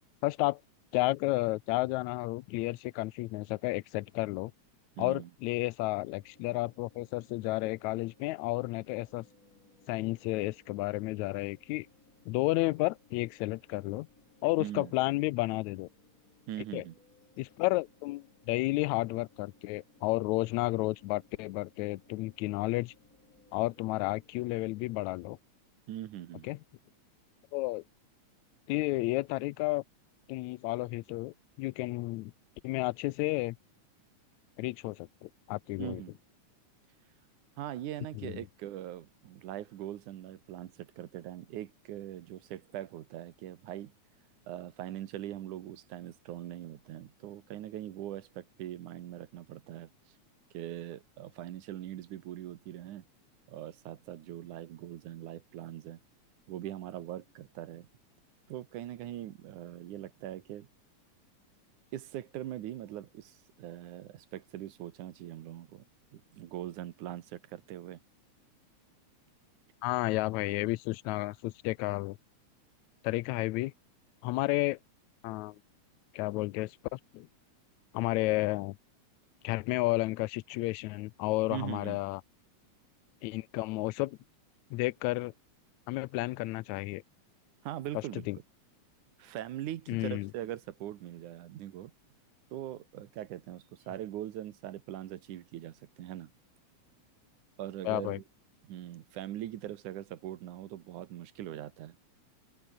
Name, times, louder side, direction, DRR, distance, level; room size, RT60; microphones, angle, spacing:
voice 1, 0.2-0.6 0.9-4.5 5.0-9.2 9.9-11.9 12.3-14.1 14.4-15.9 16.7-16.8 17.4-22.9 23.5-25.4 26.4-26.6 27.5-27.8 28.7-29.8 30.3-32.3 32.6-33.6 34.6-36.0 38.2-38.4 69.8-72.2 73.0-73.7 74.2-74.8 75.2-75.6 76.1-77.3 77.9-78.8 79.4-82.2 83.2-84.2 84.7-85.3 85.9-87.0 88.3-88.4 89.9-90.3 97.9-98.2, left 20 dB, 80° left, 1.9 m, -32 dB
voice 2, 5.0-5.3 14.6-14.9 16.5-17.0 25.9-26.5 35.8-36.2 37.6-43.9 44.5-49.9 50.5-53.0 53.5-56.0 56.5-57.9 58.5-60.7 61.9-65.8 66.1-68.0 81.5-82.0 87.6-88.3 89.2-91.9 92.5-96.3 97.6-98.2 98.6-102.0, right 12 dB, 85° right, 2.7 m, -41 dB
sound 1, 6.1-25.4, left 3 dB, 30° left, 3.9 m, -64 dB
open air
omnidirectional pair, 3.4 m